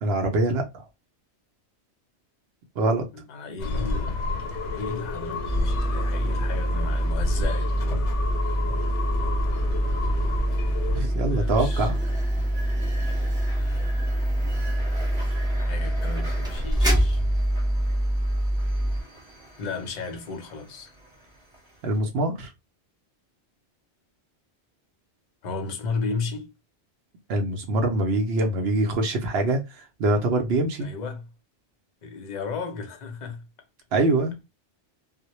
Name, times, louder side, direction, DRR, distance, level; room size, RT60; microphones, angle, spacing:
voice 1, 0.0-0.8 2.8-3.0 10.9-12.0 21.8-22.5 27.3-30.9 33.9-34.3, right 2 dB, 65° right, 0.7 m, -24 dB
voice 2, 3.1-4.2 4.7-7.8 11.2-12.1 13.5-13.9 15.5-17.2 19.6-20.9 25.4-26.5 30.8-31.2 32.0-33.4, left 4 dB, 50° left, 0.6 m, -34 dB
sound 1, 3.6-11.0, left 3 dB, 85° left, 0.9 m, -31 dB
sound 2, 5.5-19.0, right 1 dB, 5° right, 0.5 m, -25 dB
sound 3, 5.7-22.0, right 1 dB, 25° right, 0.9 m, -45 dB
2.1 x 2.0 x 2.8 m
omnidirectional pair, 1.2 m